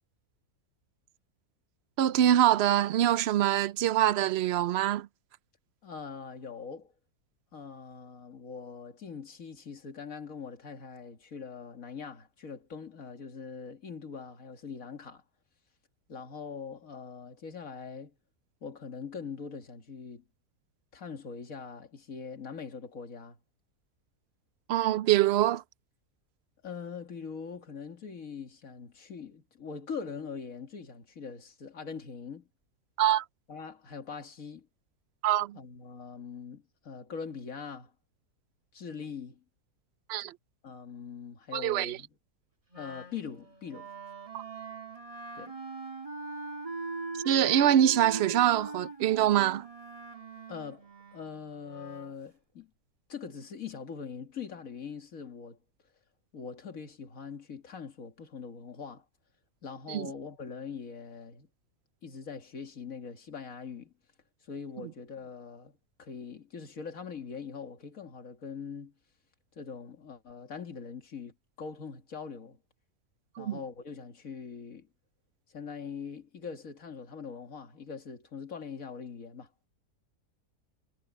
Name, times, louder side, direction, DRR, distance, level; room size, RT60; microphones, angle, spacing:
voice 1, 2.0-5.1 24.7-25.6 33.0-33.2 35.2-35.6 40.1-40.3 41.5-42.0 44.3-44.4 47.2-49.6 59.9-60.1 73.4-73.6, right 11 dB, 80° right, 0.5 m, -24 dB
voice 2, 5.8-6.9 7.5-15.2 16.1-18.1 18.6-20.2 20.9-23.4 26.6-32.5 33.5-34.7 35.5-37.9 38.7-39.4 40.6-42.1 42.7-43.9 45.3-45.6 50.5-52.7 53.1-55.6 56.3-59.1 59.6-61.5 62.0-63.9 64.4-68.9 69.6-72.6 73.4-74.9 75.5-79.5, left 6 dB, 60° left, 2.4 m, -42 dB
Wind instrument woodwind instrument, 42.7-52.2, right 3 dB, 20° right, 2.4 m, -41 dB
omnidirectional pair, 1.6 m